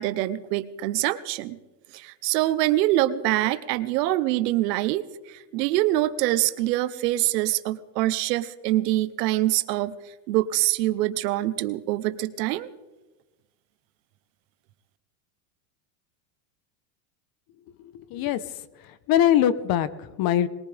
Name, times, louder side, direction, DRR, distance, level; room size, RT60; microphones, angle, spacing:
voice 1, 0.0-1.6 1.9-10.0 10.3-12.7, right 15 dB, 75° right, 13 dB, 1.1 m, -25 dB
voice 2, 17.9-18.4 19.1-20.5, left 11 dB, 45° left, 15 dB, 1.0 m, -22 dB
21.5 x 18.5 x 3.5 m, 1.1 s
supercardioid pair, 120°, 49 cm